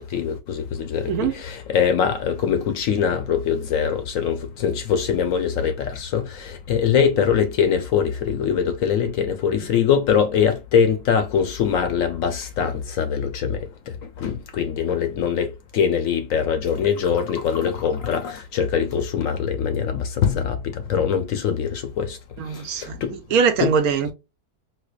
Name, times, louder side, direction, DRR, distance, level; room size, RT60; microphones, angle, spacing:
voice 1, 0.0-13.6 14.2-22.2 22.8-23.1 23.6-23.8, left 7 dB, 70° left, 0.8 m, -22 dB
voice 2, 22.4-23.0 23.3-24.1, right 6 dB, 70° right, 1.1 m, -21 dB
4.5 x 2.0 x 2.3 m
omnidirectional pair, 1.7 m